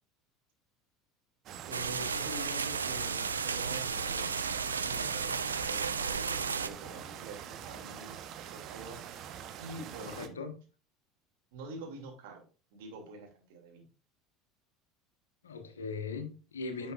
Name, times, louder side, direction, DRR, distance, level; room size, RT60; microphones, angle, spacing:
sound 1, 1.5-10.3, right 9 dB, 45° right, 0.9 m, -45 dB
voice 1, 1.7-9.0 9.6-10.4 11.5-12.4 12.7-13.8 16.8-16.9, right 2 dB, 65° right, 1 dB, 2.6 m, -46 dB
sound 2, 1.7-6.7, right 5 dB, 85° right, 0.4 m, -33 dB
voice 2, 10.1-10.5 15.4-16.9, left 4 dB, 80° left, 7 dB, 1.3 m, -39 dB
10.0 x 5.8 x 2.5 m, 0.36 s
figure-of-eight pair, 70°, 0 cm